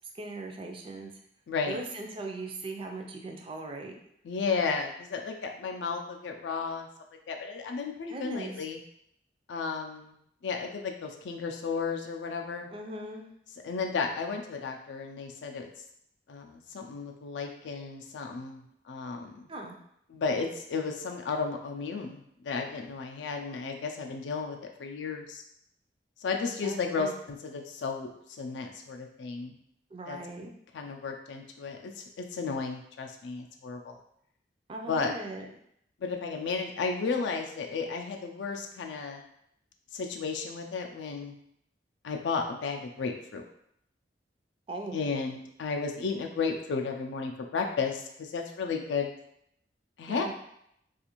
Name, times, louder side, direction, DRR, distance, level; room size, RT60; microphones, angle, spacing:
voice 1, 0.1-1.1 1.6-4.0 8.1-8.5 12.7-13.3 19.5-19.8 26.6-27.1 29.9-30.5 34.7-35.5 44.7-45.0 50.1-50.3, right 2 dB, 30° right, 2 dB, 0.3 m, -39 dB
voice 2, 1.5-1.8 4.2-6.9 7.3-8.8 9.5-10.1 10.4-12.7 13.6-15.7 16.3-19.5 20.1-25.4 26.2-29.6 30.1-30.2 30.7-34.0 34.9-35.1 36.0-39.2 39.9-41.3 42.0-43.4 44.9-49.1 50.0-50.3, left 5 dB, 85° left, 3 dB, 0.4 m, -33 dB
2.4 x 2.4 x 2.9 m, 0.73 s
head